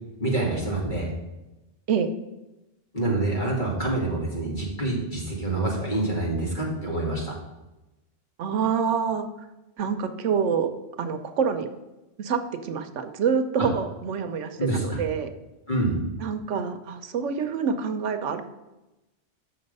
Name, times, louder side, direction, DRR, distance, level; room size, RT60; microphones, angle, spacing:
voice 1, 0.2-1.1 2.9-7.3 14.6-15.0 15.7-16.0, right 2 dB, 40° left, -3 dB, 2.4 m, -26 dB
voice 2, 8.4-9.3 9.8-10.7 11.0-11.7 12.2-15.3 16.2-18.4, right 6 dB, 75° right, 9 dB, 1.0 m, -26 dB
7.9 x 5.9 x 5.3 m, 1.0 s
omnidirectional pair, 1.2 m